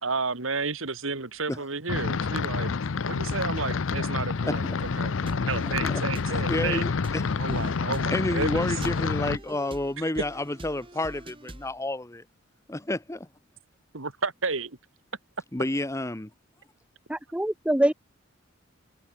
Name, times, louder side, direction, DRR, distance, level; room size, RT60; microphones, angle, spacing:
voice 1, 0.0-2.7 3.0-6.8 7.4-8.8 13.9-14.8, right 4 dB, 75° right, 2.2 m, -32 dB
sound 1, 1.9-9.4, left 5 dB, 70° left, 0.6 m, -28 dB
sound 2, 4.8-11.8, right 1 dB, 25° right, 2.3 m, -44 dB
voice 2, 6.3-7.2 8.1-12.2 12.7-13.3 15.5-16.3, left 1 dB, 15° left, 0.9 m, -30 dB
voice 3, 17.1-17.9, right 1 dB, 5° right, 0.6 m, -24 dB
head